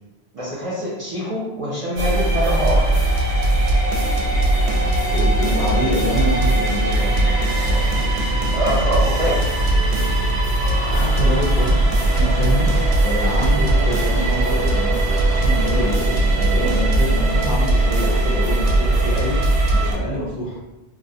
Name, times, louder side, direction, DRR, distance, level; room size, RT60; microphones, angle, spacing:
voice 1, 0.3-2.9 8.5-9.5, equal, 45° right, -7 dB, 0.5 m, -24 dB
sound 1, 2.0-19.9, right 1 dB, 85° right, 0.9 m, -19 dB
voice 2, 4.4-7.9 10.9-11.8 12.0-12.7 13.0-19.4 19.7-20.6, equal, 60° left, -4 dB, 0.7 m, -27 dB
Walk footsteps / Bell, 9.2-15.9, left 1 dB, 90° left, 0.9 m, -34 dB
2.4 x 2.0 x 2.7 m, 1.0 s
omnidirectional pair, 1.1 m